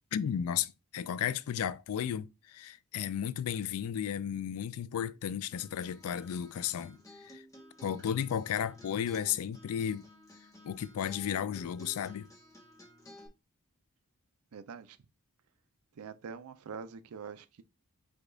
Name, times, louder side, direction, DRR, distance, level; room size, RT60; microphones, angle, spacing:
voice 1, 0.1-7.4 7.8-10.1 10.6-12.3, left 9 dB, 80° left, 0.3 m, -34 dB
Acoustic guitar, 5.3-13.3, left 1 dB, 15° left, 0.7 m, -54 dB
voice 2, 14.5-15.0 16.0-17.6, right 5 dB, 80° right, 0.5 m, -44 dB
5.0 x 2.3 x 3.8 m
head